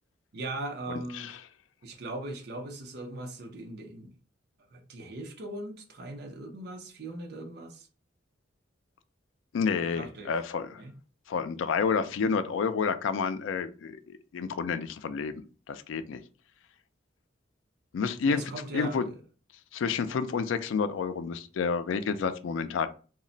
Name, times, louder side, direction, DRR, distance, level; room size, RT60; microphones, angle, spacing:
voice 1, 0.3-1.3 1.8-4.1 4.7-7.9 9.9-10.3 10.7-10.9 18.2-19.2, right 2 dB, 55° right, 0.5 m, -39 dB
voice 2, 9.5-10.8 11.3-15.3 15.7-16.2 17.9-18.4 18.7-19.0 19.7-22.9, left 5 dB, 80° left, 0.3 m, -29 dB
2.2 x 2.1 x 3.7 m
head